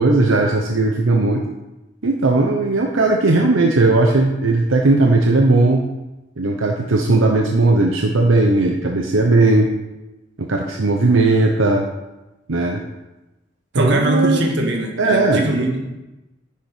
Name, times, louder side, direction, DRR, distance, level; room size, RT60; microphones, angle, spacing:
voice 1, 0.0-1.4 2.0-5.9 6.4-9.7 10.4-11.9 12.5-12.8 13.7-14.4 15.0-15.5, right 2 dB, 85° right, 2 dB, 0.9 m, -17 dB
voice 2, 13.7-15.8, right 1 dB, 65° right, 1 dB, 1.8 m, -21 dB
10.0 x 6.8 x 5.1 m, 1.0 s
head